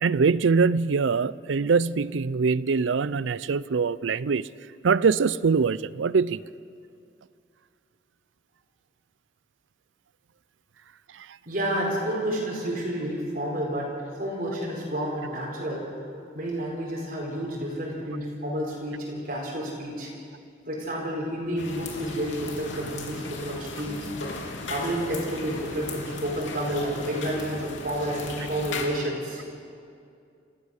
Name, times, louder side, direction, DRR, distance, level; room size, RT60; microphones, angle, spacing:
voice 1, 0.0-4.5 4.8-6.4, right 5 dB, 90° right, 0.5 m, -23 dB
voice 2, 11.5-15.9 16.3-20.1 20.7-24.1 24.7-29.4, right 1 dB, 50° right, 4.3 m, -30 dB
sound 1, 21.6-28.8, left 3 dB, 90° left, 3.1 m, -37 dB
29.0 x 15.0 x 6.5 m
head